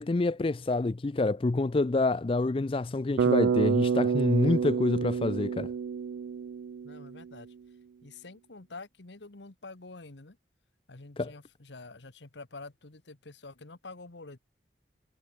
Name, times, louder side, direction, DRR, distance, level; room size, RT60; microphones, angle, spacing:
voice 1, 0.0-5.7 11.2-11.3, left 2 dB, 30° left, 0.4 m, -27 dB
Bass guitar, 3.2-7.3, right 6 dB, 85° right, 0.3 m, -28 dB
voice 2, 6.8-7.5 8.0-10.4 10.9-14.4, left 3 dB, 80° left, 1.4 m, -47 dB
head